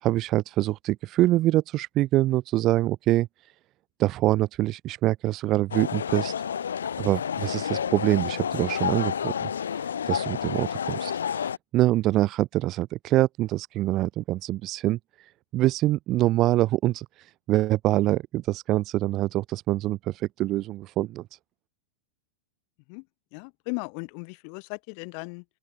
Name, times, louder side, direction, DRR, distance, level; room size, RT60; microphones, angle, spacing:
voice 1, 0.0-3.5 4.0-6.3 7.0-9.5 9.8-21.4, right 16 dB, 35° right, 0.8 m, -25 dB
sound 1, 5.7-11.6, left 8 dB, 70° left, 1.5 m, -30 dB
voice 2, 23.3-25.4, left 40 dB or more, 45° left, 2.3 m, -37 dB
open air
figure-of-eight pair, 90°, 0 cm